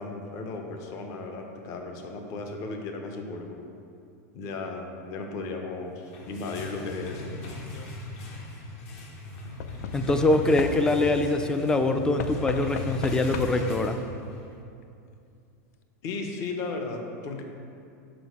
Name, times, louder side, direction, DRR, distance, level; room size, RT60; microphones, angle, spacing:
voice 1, 0.0-3.6 4.3-7.3 16.0-17.4, left 3 dB, 40° left, 3 dB, 0.7 m, -35 dB
sound 1, 5.9-14.6, left 1 dB, 60° left, 1.1 m, -39 dB
Knock / Wood, 7.4-7.9 9.6-11.1 12.2-13.8 14.8-14.9 15.1-15.2, left 7 dB, 80° left, 0.4 m, -36 dB
voice 2, 9.9-14.0, left 2 dB, 10° left, 7 dB, 0.3 m, -24 dB
6.2 x 5.0 x 4.7 m, 2.5 s
supercardioid pair, 145°, 9 cm